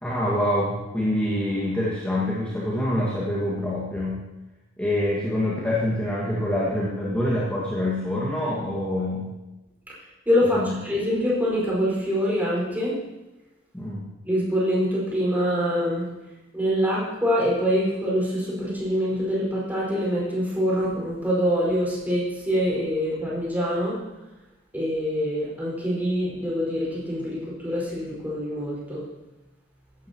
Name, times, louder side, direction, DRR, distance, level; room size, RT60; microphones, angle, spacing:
voice 1, 0.0-4.2 4.8-9.3 10.5-10.7 13.7-14.1, left 1 dB, 10° left, -6 dB, 1.9 m, -26 dB
voice 2, 9.9-13.0 14.3-16.1 16.5-24.0 24.7-29.0, equal, 10° right, -6 dB, 5.2 m, -25 dB
16.0 x 12.0 x 3.0 m, 1.0 s
head